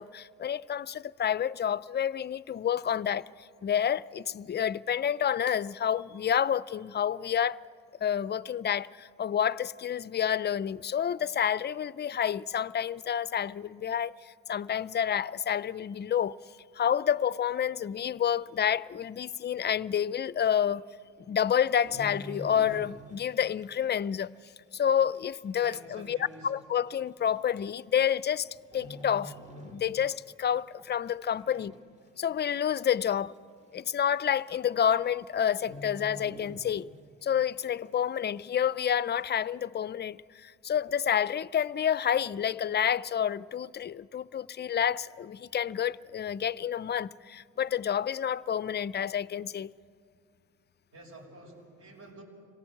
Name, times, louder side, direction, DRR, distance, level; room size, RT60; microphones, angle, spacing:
voice 1, 0.0-3.2 3.6-7.6 8.0-14.1 14.5-16.4 16.8-20.8 21.3-24.3 24.7-26.2 26.4-28.5 28.7-29.3 29.6-31.7 32.2-33.3 33.7-36.9 37.2-49.7, left 9 dB, 35° left, 0.5 m, -29 dB
sound 1, 21.6-23.4 23.6-23.9 24.5-24.6 25.4-25.5 25.8-25.9 26.7-26.9 28.0-28.4 28.7-30.3 30.6-30.8 31.3-31.9 32.2-32.3 32.5-32.6 33.0-33.1 34.1-34.2 34.5-34.8 35.0-35.2 35.5-37.2 37.6-37.7, equal, 25° right, 2.1 m, -45 dB
voice 2, 25.6-26.5 31.4-31.7 50.9-52.2, right 1 dB, 50° right, 6.6 m, -49 dB
26.5 x 18.0 x 7.8 m
cardioid pair, 90°, 30 cm